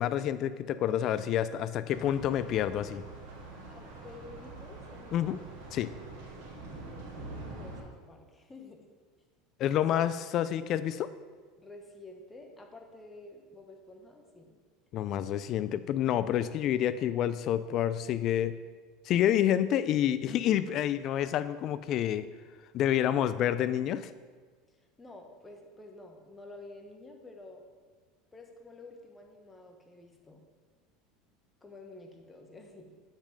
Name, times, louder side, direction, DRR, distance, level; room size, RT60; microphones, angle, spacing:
voice 1, 0.0-3.0 5.1-5.4 5.7-5.9 9.6-11.1 14.9-18.5 19.1-22.3 22.7-24.1, left 11 dB, 50° left, 13 dB, 0.4 m, -28 dB
sound 1, 1.9-7.8, right 2 dB, 70° right, 2.6 m, -45 dB
voice 2, 3.7-5.4 6.9-8.9 11.6-14.6 24.7-27.6 28.3-30.5 31.6-32.9, left 2 dB, 15° left, 2 dB, 1.3 m, -50 dB
7.3 x 5.5 x 5.2 m, 1.5 s
supercardioid pair, 105°, 0 cm